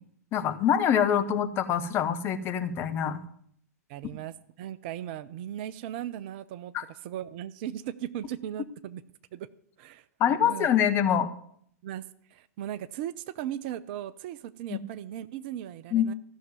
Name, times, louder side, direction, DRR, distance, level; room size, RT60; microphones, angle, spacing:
voice 1, 0.3-3.2 6.7-6.8 10.2-11.3 14.7-14.8 15.9-16.1, left 9 dB, 30° left, 8 dB, 1.2 m, -25 dB
voice 2, 3.9-6.7 7.0-9.0 9.3-9.5 9.8-10.0 10.4-10.7 11.8-12.0 12.3-16.1, right 11 dB, 40° right, 15 dB, 0.6 m, -37 dB
14.5 x 6.7 x 9.5 m, 0.62 s
figure-of-eight pair, 100°, 9 cm